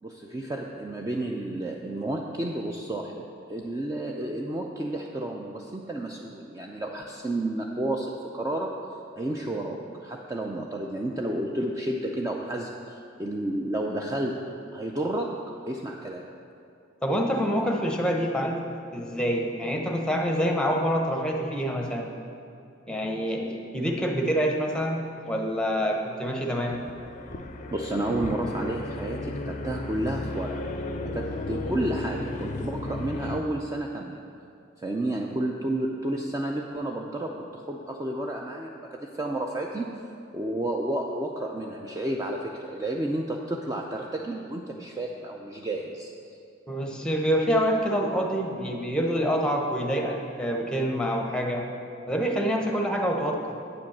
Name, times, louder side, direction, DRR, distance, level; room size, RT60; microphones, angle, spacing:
voice 1, 0.0-8.9 9.2-16.3 27.7-30.6 31.0-34.2 34.8-40.0 40.3-46.1, right 1 dB, 15° right, 0 dB, 0.4 m, -31 dB
voice 2, 17.0-18.6 18.9-22.1 22.9-26.8 31.0-31.2 46.7-51.6 52.1-53.4, equal, 5° left, 1 dB, 0.9 m, -26 dB
sound 1, 26.7-33.4, left 2 dB, 40° left, 0.5 m, -34 dB
8.7 x 5.2 x 7.1 m, 2.7 s
head